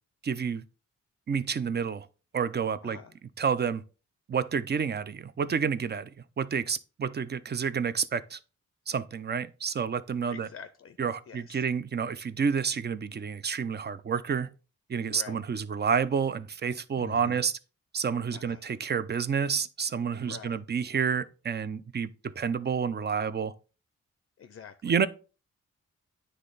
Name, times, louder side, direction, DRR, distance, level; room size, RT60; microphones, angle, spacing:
voice 1, 0.2-0.6 1.3-2.1 2.3-3.0 3.4-3.8 4.3-6.1 6.4-8.4 8.9-10.5 11.0-14.5 14.9-17.6 17.9-23.5 24.8-25.1, right 6 dB, 35° right, 0.5 m, -29 dB
voice 2, 10.3-11.0 11.3-11.6 15.1-15.4 17.0-17.4 18.3-18.6 20.2-20.6 24.4-24.9, left 7 dB, 50° left, 0.5 m, -46 dB
9.5 x 3.3 x 3.9 m
wide cardioid pair, 95°, 29 cm